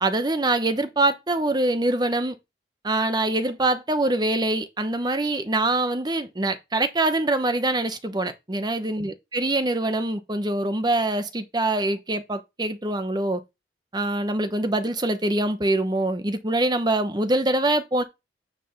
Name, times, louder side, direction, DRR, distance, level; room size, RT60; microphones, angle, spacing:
voice 1, 0.0-2.4 2.8-13.4 13.9-18.0, right 2 dB, 25° right, 1.0 m, -24 dB
9.5 x 3.3 x 5.7 m
head